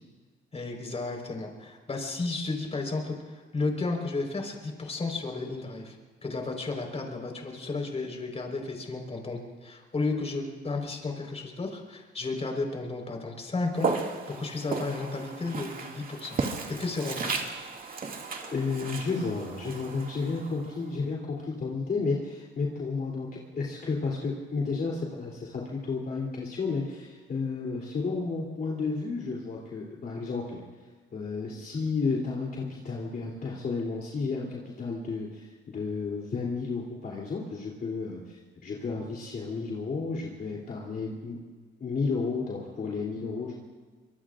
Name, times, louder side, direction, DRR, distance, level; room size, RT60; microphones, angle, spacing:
voice 1, 0.5-6.0 6.2-16.4 16.8-17.3, left 3 dB, 30° left, 2 dB, 4.4 m, -33 dB
Walk footsteps, 13.7-20.9, right 4 dB, 45° right, 2.2 m, -35 dB
voice 2, 18.4-23.3 23.5-30.6 31.1-41.4 41.8-43.5, left 4 dB, 50° left, -3 dB, 3.2 m, -32 dB
25.0 x 23.0 x 2.5 m, 1.4 s
cardioid pair, 90°, 20 cm